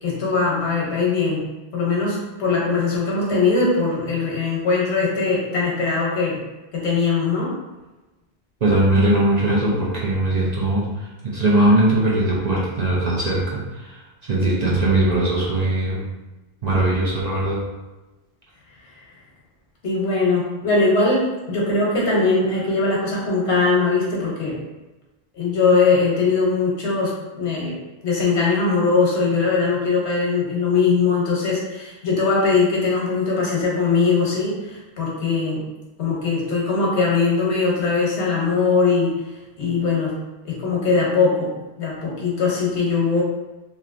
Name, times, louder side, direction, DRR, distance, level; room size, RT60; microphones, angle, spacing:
voice 1, 0.0-1.5 1.7-6.4 6.7-7.5 19.8-24.6 25.3-35.6 36.0-39.2 39.6-40.2 40.4-43.2, left 4 dB, 85° left, -4 dB, 1.2 m, -21 dB
voice 2, 8.6-11.1 11.3-16.0 16.6-17.6, right 1 dB, 45° right, -5 dB, 0.7 m, -20 dB
3.1 x 2.6 x 2.5 m, 1.1 s
omnidirectional pair, 1.1 m